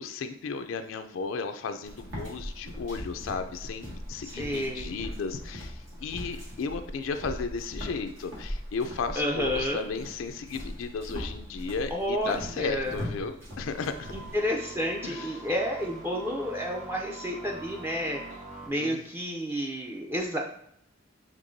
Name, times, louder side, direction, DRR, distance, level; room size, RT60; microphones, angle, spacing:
voice 1, 0.0-14.1 15.0-15.5 18.8-19.0, left 5 dB, 90° left, 8 dB, 0.4 m, -34 dB
sound 1, 1.8-14.4, equal, 85° right, 1.9 m, -40 dB
voice 2, 4.2-4.9 9.2-9.8 11.9-13.0 14.1-18.4 18.6-20.4, equal, 10° right, -1 dB, 0.4 m, -30 dB
sound 2, 13.6-18.7, right 2 dB, 40° right, 1.1 m, -44 dB
6.7 x 3.0 x 2.6 m, 0.71 s
head